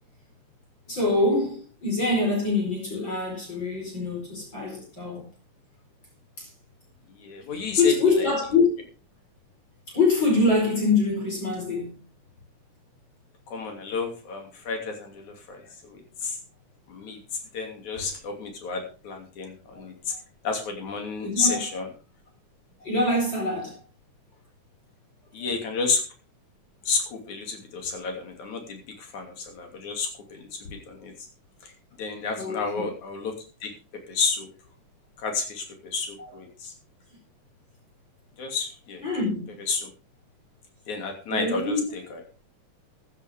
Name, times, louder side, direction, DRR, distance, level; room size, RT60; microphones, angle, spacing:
voice 1, 0.9-5.3 6.4-6.5 7.8-8.7 9.9-12.0 19.7-20.2 21.2-21.7 22.8-23.8 32.4-32.9 36.2-36.4 39.0-39.6 41.3-41.9, left 3 dB, 35° left, 5.4 m, -25 dB
voice 2, 7.2-7.9 13.5-16.4 16.9-17.2 17.5-19.9 20.4-21.9 25.3-26.0 26.9-31.1 31.6-31.7 32.0-33.3 33.6-33.7 34.1-34.5 35.2-36.7 38.4-39.0 39.7-39.9 40.9-42.2, left 4 dB, 65° left, 4.2 m, -31 dB
15.5 x 10.5 x 3.7 m
omnidirectional pair, 3.6 m